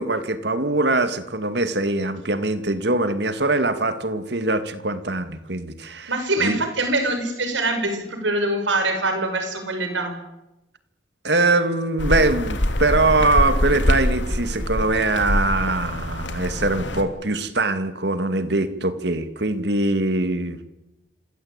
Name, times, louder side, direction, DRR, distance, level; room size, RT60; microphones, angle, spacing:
voice 1, 0.0-6.1 6.4-6.6 11.2-20.7, right 2 dB, 65° right, 11 dB, 2.2 m, -22 dB
voice 2, 6.1-10.2, right 2 dB, 85° right, 6 dB, 5.9 m, -24 dB
sound 1, 12.0-17.0, left 1 dB, 75° left, 3.0 m, -24 dB
27.0 x 20.5 x 9.0 m, 0.94 s
head